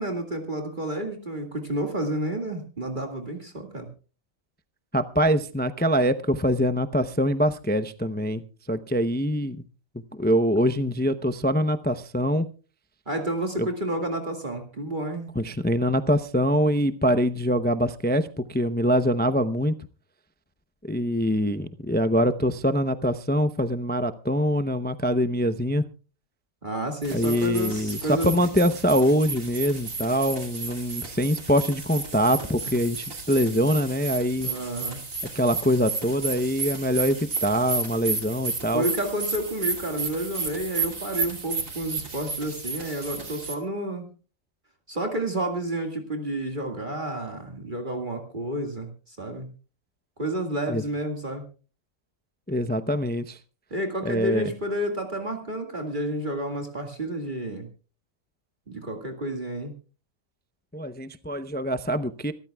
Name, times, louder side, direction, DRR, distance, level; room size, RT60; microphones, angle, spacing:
voice 1, 0.0-3.9 13.1-15.3 26.6-28.4 32.3-32.5 34.4-35.0 38.7-44.1 44.9-49.5 50.2-51.5 53.7-57.7 58.7-59.7, right 1 dB, 35° right, 3 dB, 2.2 m, -30 dB
voice 2, 4.9-8.4 8.7-9.6 10.2-12.5 13.6-13.7 15.4-19.7 20.8-25.8 27.1-34.5 35.3-38.8 50.7-50.8 52.5-53.4 54.0-54.5 60.7-62.3, equal, 15° left, 10 dB, 0.4 m, -24 dB
sound 1, 27.0-43.5, right 4 dB, 70° right, 3.1 m, -33 dB
26.0 x 13.5 x 2.3 m, 0.36 s
omnidirectional pair, 1.4 m